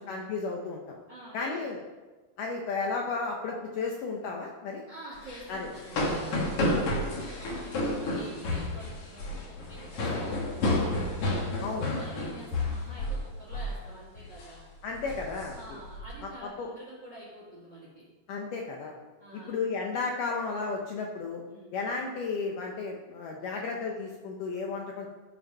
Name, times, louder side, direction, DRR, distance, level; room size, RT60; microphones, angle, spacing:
voice 1, 0.0-1.0 1.3-1.8 2.4-4.8 5.5-5.7 6.6-6.8 11.6-11.9 14.8-15.6 16.6-16.7 18.3-19.0 19.5-21.4 21.7-25.1, left 4 dB, 80° left, 1 dB, 1.9 m, -33 dB
voice 2, 1.1-1.6 4.9-6.8 7.1-11.0 11.5-14.6 15.5-18.0 19.2-19.6 21.5-21.7, right 1 dB, 45° right, -5 dB, 1.5 m, -47 dB
sound 1, 5.2-13.2 13.5-13.8 14.2-14.5 14.9-16.1, left 1 dB, 55° left, 1.7 m, -31 dB
13.5 x 5.3 x 5.3 m, 1.3 s
omnidirectional pair, 4.6 m